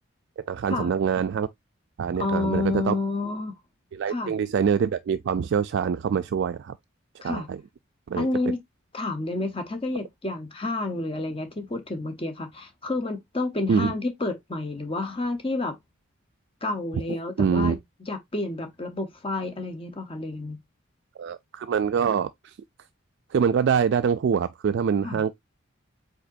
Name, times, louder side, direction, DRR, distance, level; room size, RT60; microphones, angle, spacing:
voice 1, 0.4-1.5 2.0-2.9 3.9-6.8 7.2-7.6 8.1-8.3 13.7-13.9 17.4-17.8 21.2-22.6 23.3-25.3, right 7 dB, 55° right, 0.3 m, -25 dB
voice 2, 2.2-3.5 4.1-4.3 7.2-7.5 8.1-8.6 8.9-15.8 16.6-17.8 18.1-20.6 25.0-25.2, left 2 dB, 25° left, 0.9 m, -29 dB
5.0 x 4.0 x 2.6 m
head